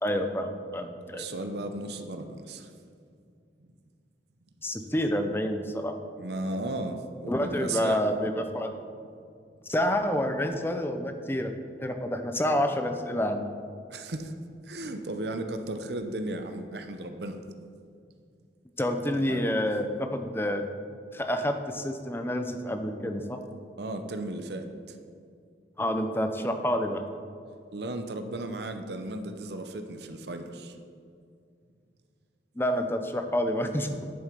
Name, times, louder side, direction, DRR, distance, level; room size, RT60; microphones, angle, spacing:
voice 1, 0.0-1.2 4.6-5.9 7.3-8.7 9.7-11.5 11.8-13.4 18.8-20.7 21.1-23.4 25.8-27.0 32.6-33.9, equal, 15° left, 6 dB, 0.6 m, -28 dB
voice 2, 1.1-2.7 6.2-8.1 13.9-14.3 14.6-17.4 19.1-19.5 23.8-25.0 27.7-30.8, right 2 dB, 70° right, 7 dB, 0.9 m, -35 dB
10.5 x 7.0 x 5.3 m, 2.3 s
head